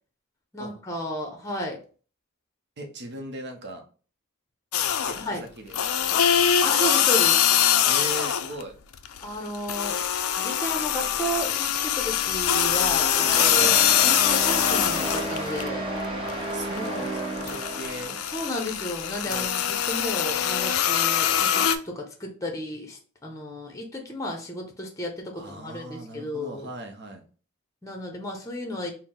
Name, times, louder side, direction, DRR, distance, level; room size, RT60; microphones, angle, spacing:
voice 1, 0.5-1.8 5.1-5.4 6.6-7.4 9.2-10.1 10.4-13.8 14.0-15.8 18.3-26.7 27.8-28.9, equal, 15° left, 2 dB, 0.6 m, -33 dB
voice 2, 2.8-3.8 5.0-5.8 6.0-6.4 7.9-8.8 13.6-13.8 16.2-18.2 19.2-19.5 25.3-27.2, right 1 dB, 55° right, 3 dB, 0.7 m, -39 dB
sound 1, 4.7-5.3 5.7-8.6 8.9-15.7 16.1-21.8, left 9 dB, 90° left, 0.4 m, -23 dB
sound 2, 13.1-18.2, right 1 dB, 25° right, 0.9 m, -31 dB
4.4 x 2.0 x 3.7 m, 0.39 s
head